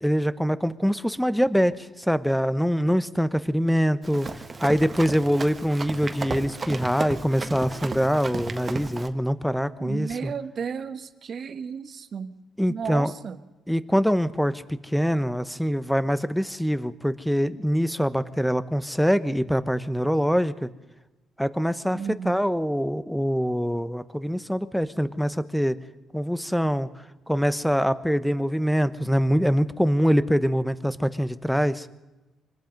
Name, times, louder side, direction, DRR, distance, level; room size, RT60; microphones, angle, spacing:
voice 1, 0.0-10.3 12.6-13.1 13.7-20.7 21.4-25.8 26.1-26.9 27.3-31.9, equal, ahead, 13 dB, 1.1 m, -24 dB
Run, 4.0-9.1, right 3 dB, 30° right, 1.6 m, -34 dB
voice 2, 9.8-12.3 12.7-13.4 21.9-22.4, right 6 dB, 55° right, 11 dB, 1.3 m, -33 dB
25.0 x 20.0 x 5.3 m, 1.1 s
cardioid pair, 90°, 0 cm